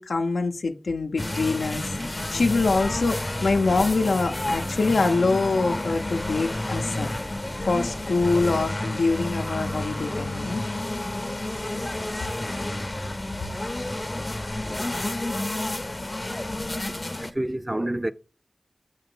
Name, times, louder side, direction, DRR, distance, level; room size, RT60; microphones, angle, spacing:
voice 1, 0.0-7.1 7.7-10.6, left 3 dB, 90° left, 0.5 m, -24 dB
sound 1, 1.2-17.3, left 1 dB, 30° left, 0.5 m, -30 dB
voice 2, 16.9-18.1, right 1 dB, 20° right, 0.4 m, -29 dB
7.3 x 2.9 x 5.3 m
cardioid pair, 45°, 0 cm